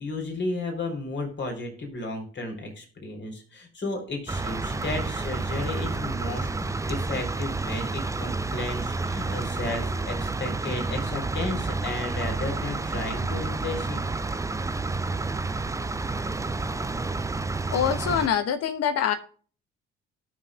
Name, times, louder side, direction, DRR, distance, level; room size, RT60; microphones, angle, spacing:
voice 1, 0.0-14.0, left 2 dB, 35° left, 4 dB, 3.9 m, -33 dB
sound 1, 4.3-18.3, right 3 dB, 10° right, 0.6 m, -30 dB
voice 2, 17.7-19.1, left 8 dB, 50° left, 10 dB, 1.2 m, -24 dB
18.5 x 6.6 x 2.4 m, 0.41 s
figure-of-eight pair, 45°, 31 cm